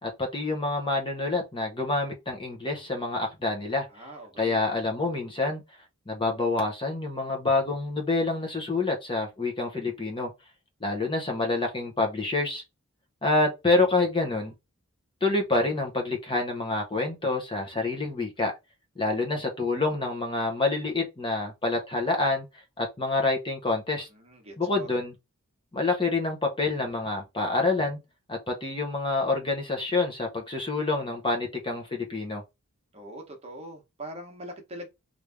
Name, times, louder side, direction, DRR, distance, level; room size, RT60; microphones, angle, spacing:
voice 1, 0.0-4.1 4.4-5.6 6.1-10.3 10.8-12.6 13.2-14.5 15.2-18.5 19.0-22.5 22.8-24.1 24.6-25.1 25.7-28.0 28.3-32.4, left 3 dB, 25° left, 0.8 m, -27 dB
voice 2, 3.9-4.6 24.1-24.9 32.9-34.9, right 1 dB, 30° right, 0.9 m, -42 dB
3.2 x 2.6 x 3.4 m
head